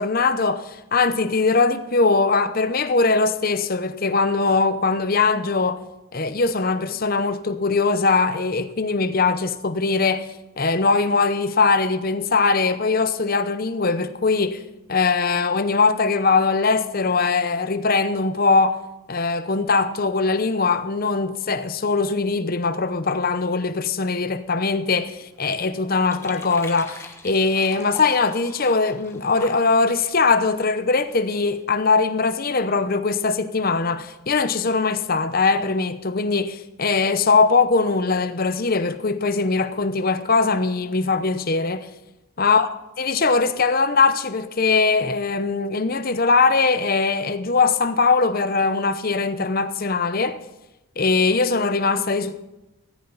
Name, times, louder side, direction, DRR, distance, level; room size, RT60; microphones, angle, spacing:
voice 1, 0.0-5.8 6.1-10.3 10.6-14.6 14.9-18.8 19.1-41.9 42.4-42.7 43.0-50.4 51.0-52.4, left 4 dB, 45° left, 0.8 m, -21 dB
sound 1, 24.5-31.6, left 2 dB, 10° left, 1.2 m, -44 dB
15.5 x 14.0 x 4.1 m
head